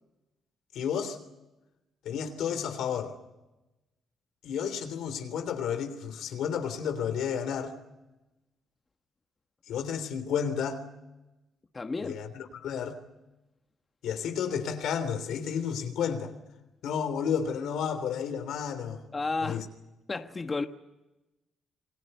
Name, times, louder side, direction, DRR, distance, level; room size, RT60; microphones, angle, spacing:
voice 1, 0.7-1.2 2.0-3.1 4.4-7.7 9.7-10.8 12.0-13.0 14.0-16.3 16.8-19.0 19.4-19.6, left 7 dB, 80° left, 3.3 m, -31 dB
voice 2, 11.7-12.2 19.1-19.7 20.1-20.6, left 3 dB, 30° left, 1.3 m, -32 dB
28.0 x 21.0 x 6.7 m
cardioid pair, 90°, 0 cm